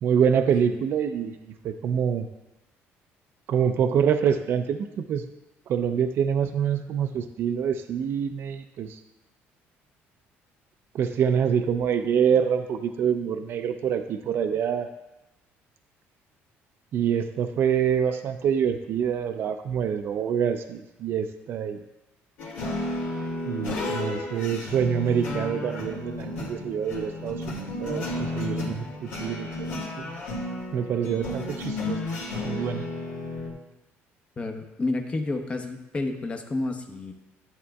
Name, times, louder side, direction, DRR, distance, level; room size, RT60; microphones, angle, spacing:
voice 1, 0.0-2.3 3.5-5.2 5.7-9.0 10.9-14.9 16.9-21.8 23.5-30.2 30.7-32.0 32.4-32.9, right 8 dB, 55° right, 7 dB, 0.5 m, -26 dB
sound 1, 22.4-33.5, left 2 dB, 85° left, 2.2 m, -32 dB
voice 2, 34.4-37.1, left 2 dB, 25° left, 5 dB, 0.8 m, -30 dB
11.0 x 7.3 x 2.3 m, 0.97 s
cardioid pair, 120°, 5 cm